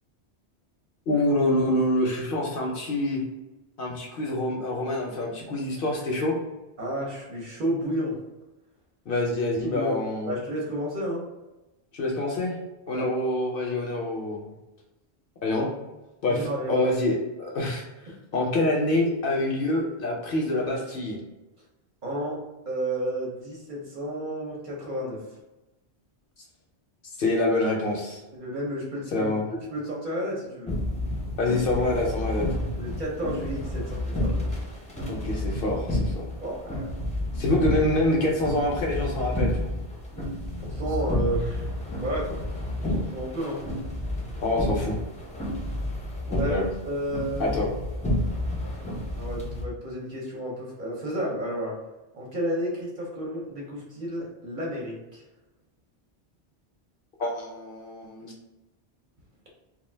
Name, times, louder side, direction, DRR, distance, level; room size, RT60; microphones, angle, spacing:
voice 1, 1.1-3.2 3.8-6.3 9.1-10.3 11.9-12.6 12.9-14.5 15.4-15.7 16.2-17.8 18.3-21.2 27.2-28.2 29.1-29.5 31.4-32.5 35.1-36.2 37.4-39.7 44.4-45.0 46.3-46.7 47.4-47.7 57.2-58.3, left 1 dB, 65° left, -1 dB, 0.7 m, -26 dB
voice 2, 6.8-8.2 9.6-11.2 12.9-13.1 16.3-16.9 18.1-18.2 22.0-22.4 22.7-25.2 28.3-29.3 29.7-30.7 32.7-34.6 36.4-36.9 37.5-37.6 40.6-41.7 42.0-42.4 42.9-43.6 46.4-47.6 49.1-51.8 52.1-55.2, equal, 50° right, -3 dB, 0.8 m, -32 dB
sound 1, 30.7-49.6, left 1 dB, 10° left, 0.4 m, -30 dB
2.3 x 2.1 x 3.2 m, 1.0 s
omnidirectional pair, 1.1 m